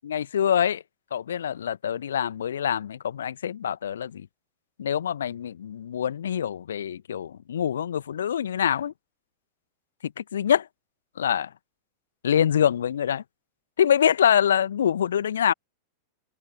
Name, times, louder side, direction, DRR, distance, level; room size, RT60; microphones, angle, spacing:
voice 1, 0.0-0.8 1.1-4.3 4.8-8.9 10.0-10.7 11.2-11.5 12.2-13.2 13.8-15.5, left 9 dB, 65° left, 1.5 m, -25 dB
open air
figure-of-eight pair, 90°, 0 cm